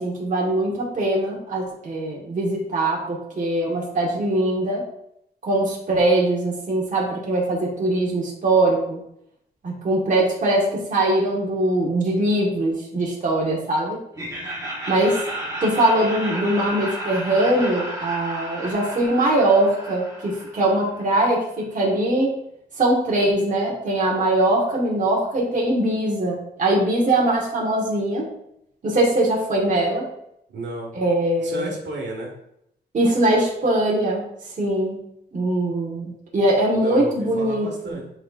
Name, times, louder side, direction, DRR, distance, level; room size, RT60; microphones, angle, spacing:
voice 1, 0.0-4.8 5.4-9.0 9.6-14.0 14.9-15.2 15.6-22.3 22.8-28.3 28.8-30.1 31.0-31.6 32.9-34.2 34.6-35.0 35.3-37.7, right 1 dB, 45° right, -3 dB, 1.4 m, -21 dB
Laughter, 14.1-21.1, right 1 dB, 20° right, 1.5 m, -32 dB
voice 2, 30.5-30.9 31.4-32.3 36.7-38.1, right 1 dB, 75° right, -1 dB, 1.6 m, -32 dB
9.6 x 4.1 x 2.4 m, 0.77 s
wide cardioid pair, 160°, 19 cm